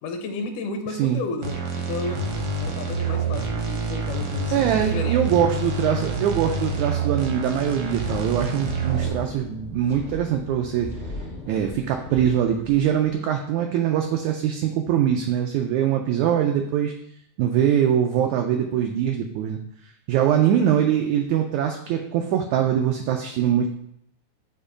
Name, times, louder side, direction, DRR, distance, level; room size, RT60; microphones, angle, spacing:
voice 1, 0.0-5.2, left 3 dB, 75° left, 5 dB, 2.2 m, -33 dB
sound 1, 1.4-9.1, right 3 dB, 70° right, 1.4 m, -27 dB
voice 2, 4.5-10.9 11.5-16.9 17.4-19.6 20.1-23.7, right 9 dB, 85° right, 3 dB, 1.6 m, -22 dB
Wind, 7.5-13.1, left 2 dB, 55° left, 0.7 m, -39 dB
6.7 x 2.9 x 4.9 m, 0.73 s
omnidirectional pair, 3.8 m